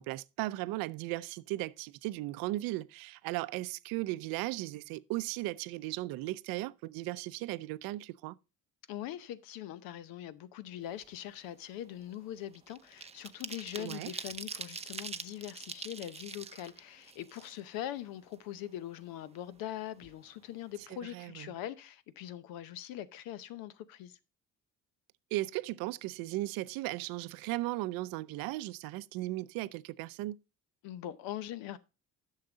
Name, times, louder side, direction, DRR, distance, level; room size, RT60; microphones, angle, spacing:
voice 1, 0.0-8.3 13.8-14.1 21.0-21.5 25.3-30.4, right 18 dB, 85° right, 0.5 m, -36 dB
voice 2, 8.9-24.2 30.8-31.8, left 12 dB, 85° left, 0.8 m, -42 dB
sound 1, 10.9-11.2 11.5-18.0 18.3-18.4 18.7-19.7 20.0-20.2 20.5-20.8, right 5 dB, 20° right, 0.6 m, -44 dB
10.5 x 6.6 x 3.9 m
cardioid pair, 95°, 34 cm